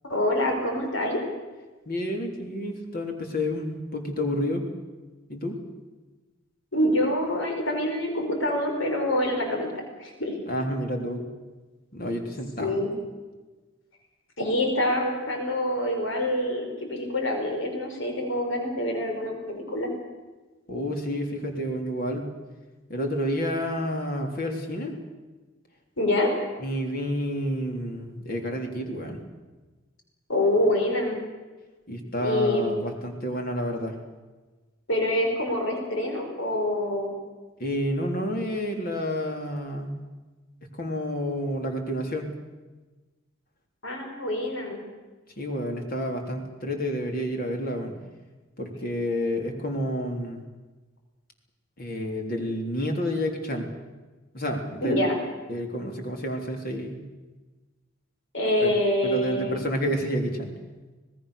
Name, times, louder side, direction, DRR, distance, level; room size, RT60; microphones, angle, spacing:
voice 1, 0.0-1.2 6.7-9.7 10.0-10.3 12.6-12.9 14.4-19.9 26.0-26.3 30.3-31.2 32.2-32.7 34.9-37.1 43.8-44.8 54.8-55.2 58.3-59.6, left 1 dB, 70° left, 2 dB, 5.1 m, -26 dB
voice 2, 1.9-4.6 5.3-5.6 10.5-11.2 11.9-12.7 20.7-22.3 22.9-24.9 26.6-29.2 31.9-34.0 37.6-39.9 40.7-42.3 45.4-47.9 48.6-50.4 51.8-53.7 54.3-55.0 55.5-57.0 58.6-58.7 59.0-60.5, equal, 45° left, 3 dB, 3.6 m, -29 dB
26.0 x 19.5 x 6.7 m, 1.2 s
head